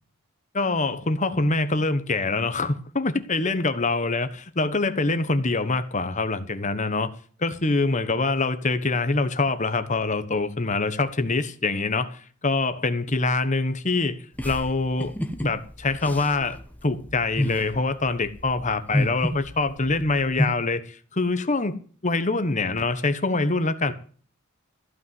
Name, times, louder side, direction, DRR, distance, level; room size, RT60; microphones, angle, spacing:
voice 1, 0.5-7.1 7.4-15.1 15.4-21.7 22.0-23.9, left 3 dB, 35° left, 1.2 m, -25 dB
sound 1, 14.4-20.5, left 1 dB, 10° left, 1.3 m, -30 dB
15.0 x 5.9 x 9.5 m
head